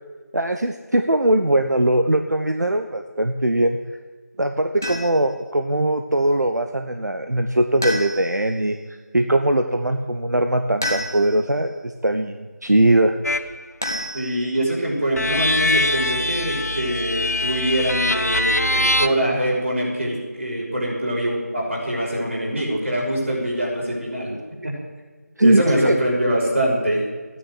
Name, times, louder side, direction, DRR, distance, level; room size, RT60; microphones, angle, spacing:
voice 1, 0.3-3.8 4.4-13.2 25.4-26.0, right 1 dB, 80° right, 6 dB, 1.2 m, -20 dB
sound 1, 4.8-5.3 7.8-8.5 10.8-11.5 13.8-14.7, left 1 dB, 10° left, 0.6 m, -29 dB
sound 2, 13.2-13.5 15.2-19.1, left 1 dB, 70° left, 1.2 m, -22 dB
voice 2, 14.1-24.4 24.6-24.7 25.4-27.0, right 1 dB, 50° right, -3 dB, 6.0 m, -23 dB
15.0 x 9.9 x 9.5 m, 1.4 s
figure-of-eight pair, 180°, 9 cm